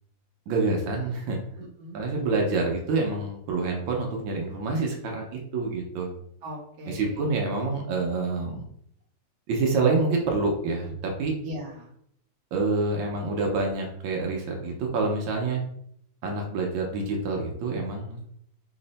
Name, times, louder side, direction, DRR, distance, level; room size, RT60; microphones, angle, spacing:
voice 1, 0.5-1.4 1.9-6.1 6.9-8.6 9.5-11.3 12.5-15.6 16.2-18.3, right 3 dB, 85° right, 0 dB, 1.5 m, -27 dB
voice 2, 1.6-2.0 6.4-7.3 8.1-8.2 11.4-11.9, equal, 70° right, -2 dB, 1.4 m, -39 dB
3.6 x 2.0 x 3.9 m, 0.69 s
omnidirectional pair, 2.1 m